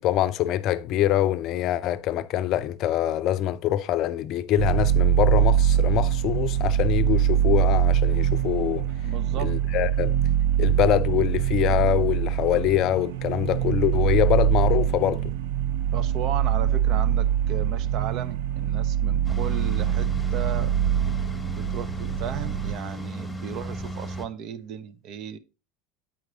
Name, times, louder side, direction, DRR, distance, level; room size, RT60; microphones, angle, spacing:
voice 1, 0.0-8.9 9.4-10.2 10.6-15.3, left 12 dB, 55° left, 0.5 m, -24 dB
sound 1, 4.6-22.7, right 10 dB, 75° right, 0.5 m, -23 dB
voice 2, 9.0-9.6 15.9-20.7 21.4-25.4, right 8 dB, 55° right, 0.9 m, -35 dB
sound 2, 19.2-24.3, right 1 dB, 5° left, 1.2 m, -34 dB
8.8 x 4.7 x 3.9 m
hypercardioid pair, 90°, 0 cm